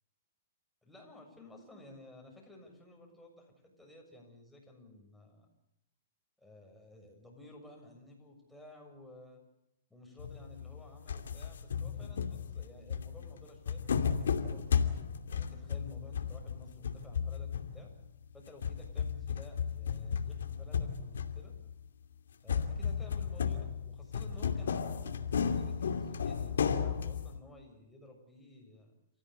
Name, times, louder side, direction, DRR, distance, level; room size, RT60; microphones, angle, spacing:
voice 1, 0.8-5.5 6.4-9.4 9.9-14.8 15.3-17.9 18.3-21.6 22.4-28.9, left 1 dB, 5° left, 0 dB, 7.0 m, -55 dB
sound 1, 10.2-10.8 11.1-18.0 18.5-21.7 22.5-27.4, left 7 dB, 85° left, 2.7 m, -34 dB
29.0 x 15.5 x 8.2 m, 0.82 s
hypercardioid pair, 145°, 0 cm